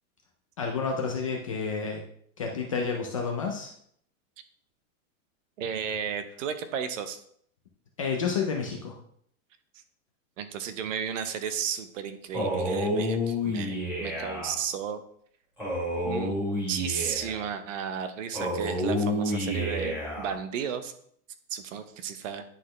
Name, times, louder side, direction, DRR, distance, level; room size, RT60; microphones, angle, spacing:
voice 1, 0.6-2.0 2.4-3.7 8.0-8.9, left 5 dB, 25° left, 1 dB, 0.4 m, -30 dB
voice 2, 5.6-7.2 10.4-15.0 16.0-16.4 16.7-20.9 21.5-22.4, right 7 dB, 60° right, 10 dB, 0.9 m, -33 dB
Male speech man speaking, 12.3-14.5 15.6-17.4 18.3-20.3, left 1 dB, ahead, 2.5 m, -29 dB
9.7 x 4.2 x 3.1 m, 0.65 s
supercardioid pair, 170°, 43 cm